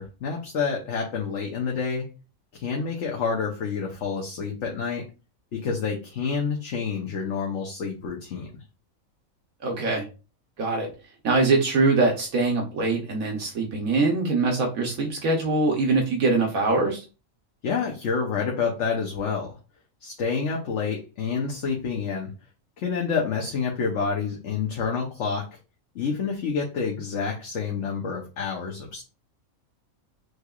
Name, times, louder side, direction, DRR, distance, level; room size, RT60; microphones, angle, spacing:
voice 1, 0.0-2.1 2.5-5.0 5.5-8.5 17.6-19.6 20.0-22.3 22.8-25.5 25.9-29.0, left 5 dB, 60° left, 0 dB, 1.1 m, -28 dB
voice 2, 9.6-10.0 10.6-10.9 11.2-17.0, right 3 dB, 75° right, 0 dB, 1.3 m, -23 dB
6.5 x 3.2 x 2.4 m, 0.32 s
omnidirectional pair, 1.5 m